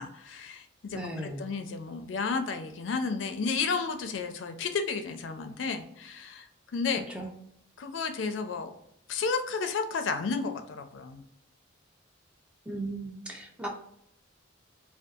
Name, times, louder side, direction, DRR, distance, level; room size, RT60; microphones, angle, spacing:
voice 1, 0.0-6.5 6.7-7.1 7.8-8.7 9.1-11.2, left 4 dB, 85° left, 7 dB, 0.4 m, -32 dB
voice 2, 0.9-1.5 7.0-7.3 12.7-13.7, right 1 dB, 5° right, 2 dB, 0.4 m, -37 dB
2.6 x 2.3 x 2.3 m, 0.73 s
head